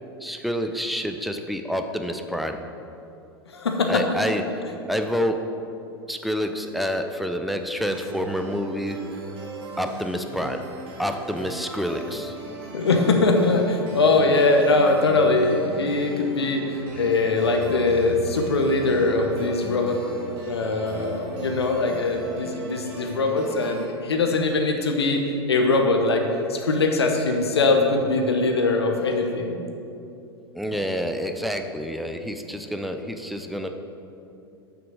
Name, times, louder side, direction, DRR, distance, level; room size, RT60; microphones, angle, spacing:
voice 1, 0.2-2.6 3.9-4.4 4.9-5.5 6.1-9.0 9.8-10.6 11.0-12.4 30.5-33.7, equal, ahead, 6 dB, 0.5 m, -28 dB
voice 2, 3.5-4.0 12.7-20.0 20.4-26.2 26.5-29.6, left 3 dB, 80° left, 3 dB, 0.9 m, -22 dB
sound 1, 7.9-23.9, right 3 dB, 40° right, 1.6 m, -37 dB
6.3 x 6.0 x 6.3 m, 2.7 s
figure-of-eight pair, 95°, 14 cm